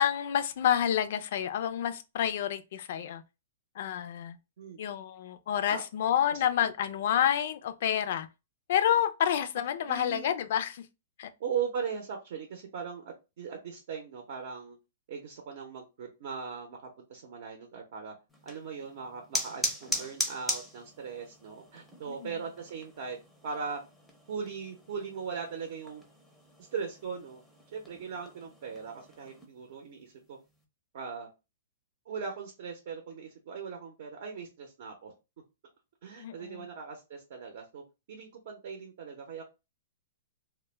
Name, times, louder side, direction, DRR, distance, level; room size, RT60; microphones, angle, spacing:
voice 1, 0.0-3.2 3.8-4.4 4.8-8.3 8.7-10.9 11.2-11.3 22.1-22.4 36.2-36.7, left 10 dB, 60° left, 0.3 m, -29 dB
voice 2, 9.8-10.3 11.4-14.8 15.1-18.1 18.4-23.2 23.4-23.8 24.3-26.0 26.7-27.4 27.7-30.4 30.9-31.3 32.1-35.1 36.0-39.4, right 6 dB, 60° right, 0.6 m, -39 dB
sound 1, 18.3-29.5, left 1 dB, ahead, 0.5 m, -40 dB
2.1 x 2.1 x 3.1 m
hypercardioid pair, 150°, 0 cm